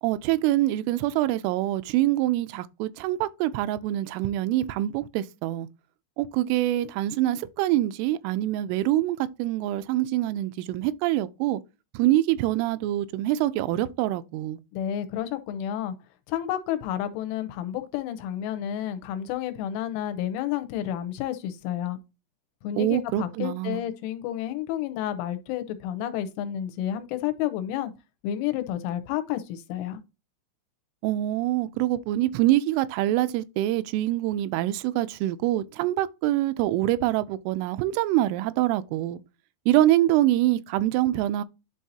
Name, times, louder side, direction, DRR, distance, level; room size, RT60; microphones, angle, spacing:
voice 1, 0.0-5.7 6.2-11.6 11.9-14.6 22.8-23.8 31.0-39.2 39.7-41.4, right 14 dB, 85° right, 3.0 m, -25 dB
voice 2, 14.7-15.9 16.3-22.0 22.6-27.9 28.2-30.0, left 11 dB, 85° left, 3.2 m, -30 dB
11.0 x 4.0 x 2.8 m
omnidirectional pair, 5.7 m